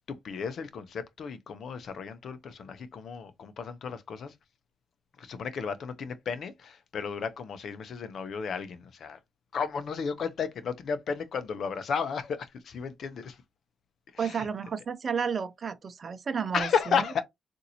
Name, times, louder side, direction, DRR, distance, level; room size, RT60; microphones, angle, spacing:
voice 1, 0.1-4.4 5.2-9.2 9.5-13.4 14.1-14.5 16.5-17.2, left 6 dB, 65° left, 0.7 m, -33 dB
voice 2, 14.2-16.7, right 6 dB, 50° right, 0.6 m, -31 dB
3.9 x 2.6 x 2.8 m
supercardioid pair, 60°, 0 cm